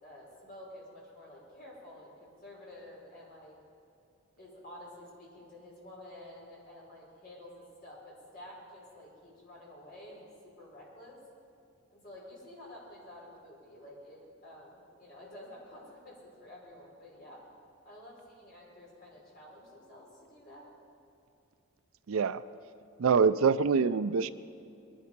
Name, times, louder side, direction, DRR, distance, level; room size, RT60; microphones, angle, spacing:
voice 1, 0.0-3.6 4.4-10.3 10.6-11.2 11.9-17.4 17.8-20.7, left 1 dB, 40° left, -4 dB, 4.9 m, -50 dB
voice 2, 22.1-22.4 23.0-24.3, right 5 dB, 70° right, 15 dB, 0.4 m, -25 dB
21.5 x 11.5 x 5.2 m, 2.6 s
head